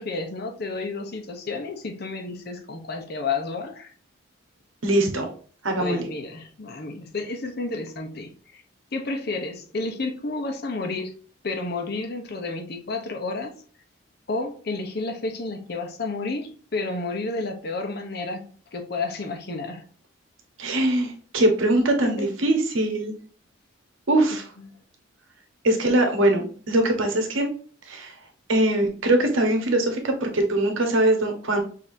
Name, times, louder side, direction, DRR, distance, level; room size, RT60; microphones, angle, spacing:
voice 1, 0.0-3.9 5.7-8.6 8.9-11.1 11.4-13.5 14.3-18.4 18.7-19.8 22.0-22.3 24.6-24.7, left 3 dB, 55° left, 4 dB, 0.8 m, -31 dB
voice 2, 4.8-5.3 5.6-6.1 20.6-23.1 24.1-24.4 25.6-27.5 27.9-28.1 28.5-31.6, right 1 dB, 85° right, 4 dB, 1.1 m, -22 dB
6.2 x 2.8 x 2.6 m, 0.43 s
head